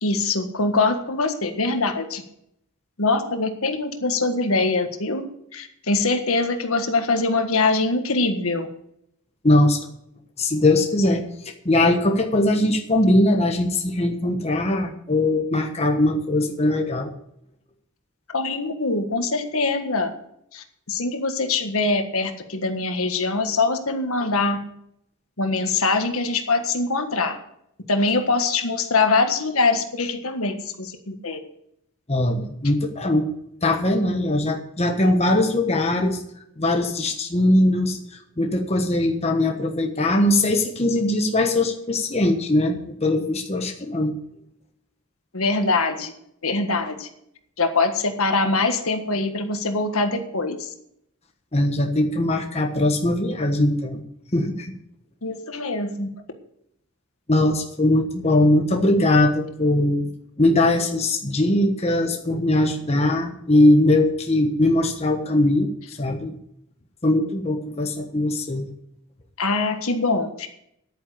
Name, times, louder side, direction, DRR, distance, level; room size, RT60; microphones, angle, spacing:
voice 1, 0.0-2.2 3.0-5.3 5.5-8.7 18.3-20.1 20.5-24.6 25.4-27.4 27.9-31.4 45.3-46.1 46.4-47.1 47.6-50.7 55.2-56.1 69.4-70.5, left 3 dB, 75° left, 6 dB, 1.6 m, -23 dB
voice 2, 9.4-9.9 10.4-17.1 32.1-33.3 33.6-36.2 36.6-44.1 51.5-54.0 54.3-54.8 57.3-60.1 60.4-66.3 67.0-68.7, left 1 dB, 30° left, 3 dB, 1.2 m, -21 dB
10.5 x 9.2 x 6.8 m, 0.73 s
head